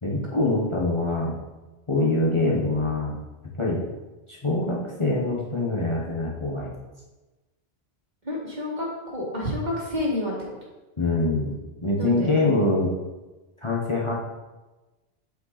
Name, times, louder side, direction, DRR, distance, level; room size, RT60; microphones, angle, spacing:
voice 1, 0.0-1.3 1.9-3.2 3.6-3.8 4.3-6.7 11.0-11.5 11.8-12.9 13.6-14.1, left 2 dB, 30° left, -3 dB, 1.1 m, -24 dB
voice 2, 8.2-10.3 12.0-12.3, left 1 dB, 40° right, -4 dB, 2.3 m, -29 dB
8.2 x 5.5 x 4.1 m, 1.1 s
omnidirectional pair, 1.1 m